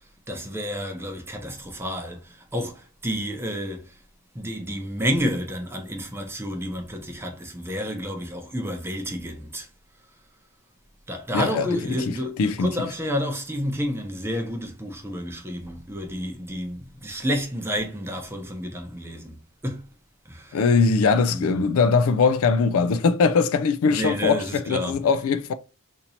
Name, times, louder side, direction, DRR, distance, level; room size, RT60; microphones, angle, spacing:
voice 1, 0.3-4.0 4.3-9.7 11.1-19.9 20.3-20.7 21.3-21.7 23.9-25.2, equal, 10° right, 0.6 m, -30 dB
voice 2, 11.3-12.9 20.5-25.5, left 4 dB, 65° left, 0.3 m, -21 dB
2.9 x 2.7 x 4.1 m
head